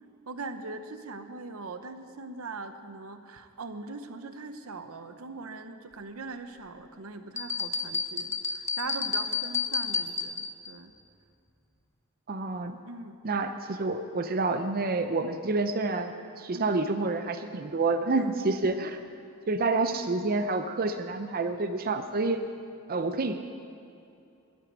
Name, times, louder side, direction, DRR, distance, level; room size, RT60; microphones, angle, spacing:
voice 1, 0.3-10.9 12.8-13.2 16.5-16.8 18.1-18.4, right 3 dB, 90° right, 9 dB, 0.8 m, -41 dB
sound 1, 7.4-10.7, left 5 dB, 15° left, 0.6 m, -31 dB
voice 2, 12.3-12.8 13.2-19.0 19.5-22.4 22.9-23.4, right 3 dB, 45° right, 8 dB, 0.6 m, -28 dB
11.0 x 9.9 x 8.1 m, 2.6 s
head